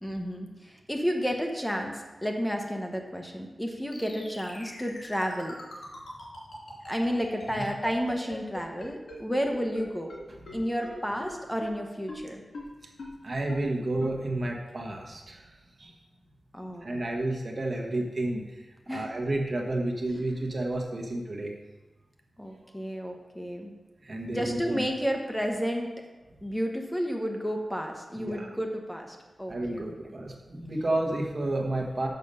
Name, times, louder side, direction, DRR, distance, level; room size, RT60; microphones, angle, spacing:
voice 1, 0.0-5.6 6.8-10.1 10.5-12.4 16.5-17.0 18.9-19.1 22.4-23.7 24.3-25.9 26.4-30.1, equal, 5° left, 2 dB, 1.0 m, -31 dB
sound 1, 3.9-9.1 9.4-9.5 9.8-9.9 10.1-10.2 10.5-10.6 10.8-10.9 11.2-11.3 11.6-11.7 12.1-12.2 12.5-12.6 13.0-13.1 13.5-13.6 14.0-14.1, left 2 dB, 80° left, 2.6 m, -41 dB
voice 2, 13.2-15.9 16.8-18.6 18.9-21.5 24.0-24.9 28.2-28.5 29.5-32.1, right 2 dB, 50° right, 1 dB, 1.3 m, -31 dB
6.9 x 6.7 x 5.5 m, 1.2 s
wide cardioid pair, 85°, 0 cm